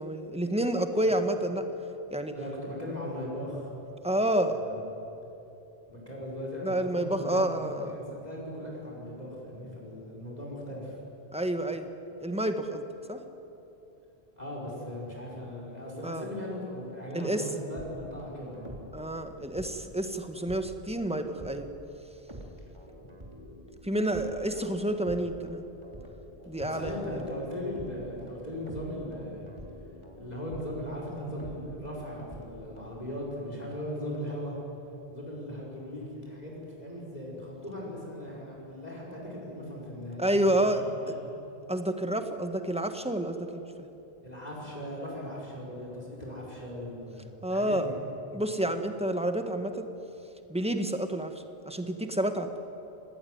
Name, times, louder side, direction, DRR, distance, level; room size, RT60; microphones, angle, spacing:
voice 1, 0.0-1.7 2.1-2.3 4.0-4.6 6.6-7.9 11.3-11.9 12.2-12.8 13.1-13.2 16.0-16.3 17.1-17.4 18.9-21.7 23.8-25.6 26.5-27.2 40.2-41.1 41.7-43.6 47.4-47.9 48.3-49.9 50.5-51.3 51.6-52.6, right 1 dB, 5° right, 6 dB, 1.6 m, -29 dB
voice 2, 2.3-3.7 4.5-4.9 5.9-11.0 14.4-18.7 23.0-23.1 26.6-29.5 30.1-34.5 35.1-40.5 40.8-41.3 44.2-47.9, left 1 dB, 40° left, -3 dB, 5.8 m, -38 dB
sound 1, 17.7-20.9 21.4-21.6 22.3-32.9, equal, 25° right, 3.5 m, -47 dB
27.5 x 19.0 x 9.6 m, 3.0 s
omnidirectional pair, 1.1 m